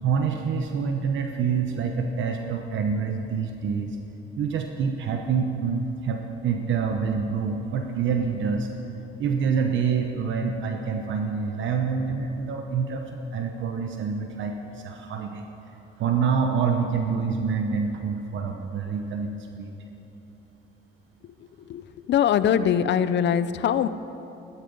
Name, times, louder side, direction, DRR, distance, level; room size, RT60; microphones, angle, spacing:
voice 1, 0.0-4.0 4.4-8.7 9.2-15.4 16.0-19.7, right 6 dB, 75° right, 4 dB, 1.0 m, -26 dB
voice 2, 21.7-23.9, left 9 dB, 65° left, 14 dB, 0.6 m, -22 dB
16.0 x 13.0 x 5.4 m, 3.0 s
cardioid pair, 90°, 20 cm